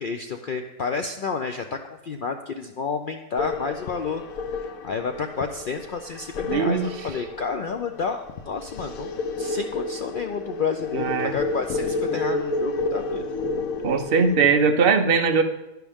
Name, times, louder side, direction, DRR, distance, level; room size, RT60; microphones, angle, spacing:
voice 1, 0.0-4.2 4.6-9.1 9.4-13.2, left 5 dB, 60° left, 6 dB, 0.5 m, -30 dB
sound 1, 3.4-14.4, left 3 dB, 85° left, 1.2 m, -31 dB
voice 2, 6.4-6.9 10.9-11.4 13.8-15.4, right 5 dB, 50° right, 6 dB, 0.9 m, -20 dB
11.0 x 10.5 x 3.5 m, 1.0 s
omnidirectional pair, 1.4 m